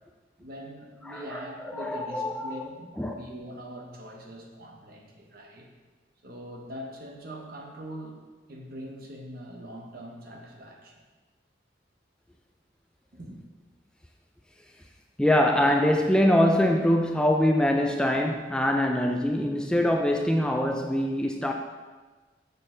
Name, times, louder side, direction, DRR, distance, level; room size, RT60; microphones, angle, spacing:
voice 1, 0.4-5.7 6.2-8.2 8.5-11.0 13.1-13.4, equal, 55° right, 1 dB, 1.1 m, -42 dB
voice 2, 1.1-1.5 1.7-2.7 3.0-3.1 15.2-21.5, left 1 dB, 5° left, 2 dB, 0.3 m, -23 dB
6.6 x 6.5 x 3.8 m, 1.3 s
head